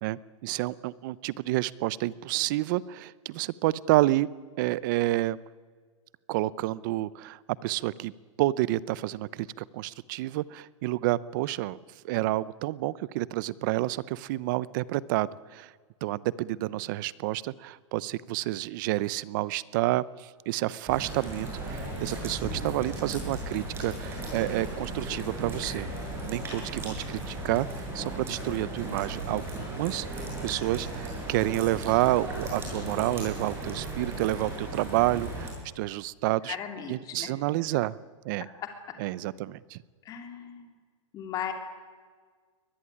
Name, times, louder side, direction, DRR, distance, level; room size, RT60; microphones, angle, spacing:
voice 1, 0.0-4.3 4.6-5.4 6.3-8.1 8.4-11.8 12.0-15.7 16.0-25.9 26.2-36.6 36.9-38.0 38.2-38.5 39.0-39.8, right 17 dB, 40° right, 20 dB, 0.7 m, -29 dB
sound 1, 20.9-35.5, right 1 dB, 15° right, 7.7 m, -36 dB
voice 2, 36.4-37.3 40.0-40.7 41.1-41.5, left 9 dB, 20° left, 5 dB, 3.2 m, -37 dB
23.0 x 20.0 x 9.9 m, 1.5 s
hypercardioid pair, 160°, 16 cm